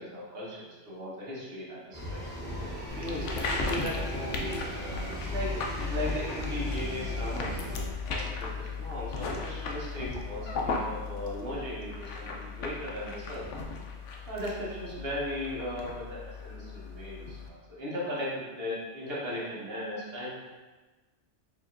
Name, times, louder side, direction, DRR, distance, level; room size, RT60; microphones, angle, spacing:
voice 1, 0.0-4.7 5.3-13.4 14.3-20.3, equal, 55° right, -6 dB, 1.3 m, -37 dB
sound 1, 1.9-7.8, left 1 dB, 10° left, 0.7 m, -36 dB
sound 2, 2.9-17.5, left 4 dB, 80° left, 0.9 m, -36 dB
4.9 x 2.9 x 2.5 m, 1.2 s
omnidirectional pair, 1.2 m